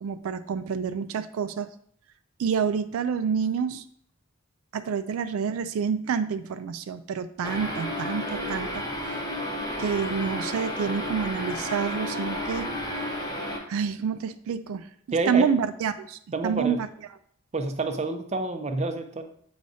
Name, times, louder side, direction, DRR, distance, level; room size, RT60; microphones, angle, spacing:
voice 1, 0.0-1.7 2.4-3.8 4.7-8.8 9.8-12.7 13.7-14.9 15.3-16.9, right 6 dB, 85° right, 11 dB, 0.3 m, -28 dB
sound 1, 7.4-13.6, left 1 dB, 20° left, 0.8 m, -32 dB
voice 2, 15.1-15.5 16.3-16.8 17.5-19.2, right 3 dB, 30° right, 7 dB, 0.5 m, -28 dB
7.9 x 4.8 x 2.6 m, 0.64 s
head